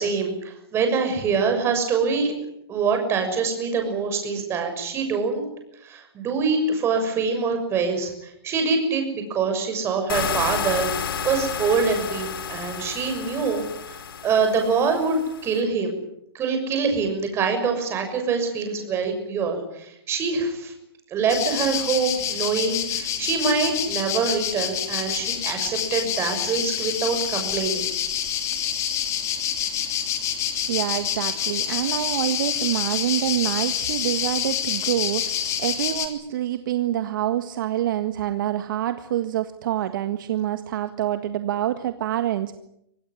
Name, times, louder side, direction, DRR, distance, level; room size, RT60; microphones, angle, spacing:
voice 1, 0.0-2.3 2.7-5.4 5.8-10.9 11.2-14.0 14.2-15.9 16.3-20.7 21.1-27.9, right 5 dB, 20° right, 5 dB, 6.6 m, -24 dB
sound 1, 10.1-15.6, left 7 dB, 65° left, 5.9 m, -31 dB
sound 2, 21.3-36.1, left 9 dB, 20° left, 3.2 m, -27 dB
voice 2, 30.7-42.6, right 12 dB, 55° right, 9 dB, 1.7 m, -26 dB
24.5 x 18.5 x 9.8 m, 0.78 s
hypercardioid pair, 150°, 13 cm